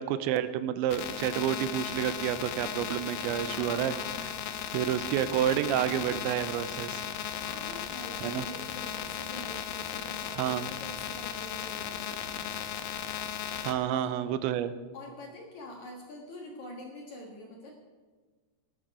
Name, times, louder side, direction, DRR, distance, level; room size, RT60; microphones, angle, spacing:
voice 1, 0.0-4.0 4.2-4.3 4.7-7.0 8.2-8.4 10.4-10.7 13.6-14.7, right 11 dB, 90° right, 13 dB, 3.0 m, -29 dB
sound 1, 0.9-13.7, left 9 dB, 75° left, 2.0 m, -36 dB
voice 2, 3.5-4.6 7.3-12.5 13.7-14.2 14.9-17.7, left 1 dB, 55° left, 0 dB, 2.2 m, -45 dB
17.5 x 11.5 x 4.8 m, 1.4 s
omnidirectional pair, 5.3 m